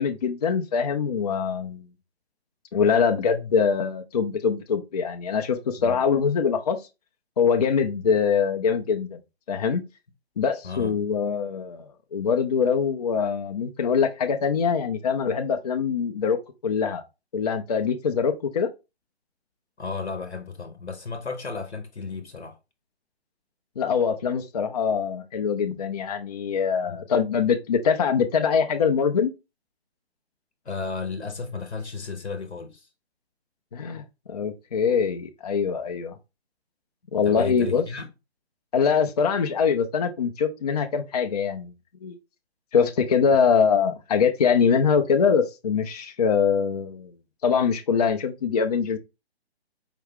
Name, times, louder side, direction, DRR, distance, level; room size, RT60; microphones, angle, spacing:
voice 1, 0.0-1.9 2.7-6.8 7.4-9.2 9.5-9.8 10.4-17.0 17.3-18.7 23.8-29.3 33.7-36.2 37.1-37.8 38.7-41.7 42.0-42.2 42.7-47.1 47.4-49.0, left 6 dB, 40° left, 0.4 m, -23 dB
voice 2, 19.8-22.6 26.9-27.0 30.6-32.9 37.2-38.1, left 4 dB, 85° left, 0.8 m, -33 dB
4.7 x 2.3 x 3.5 m
figure-of-eight pair, 140°, 32 cm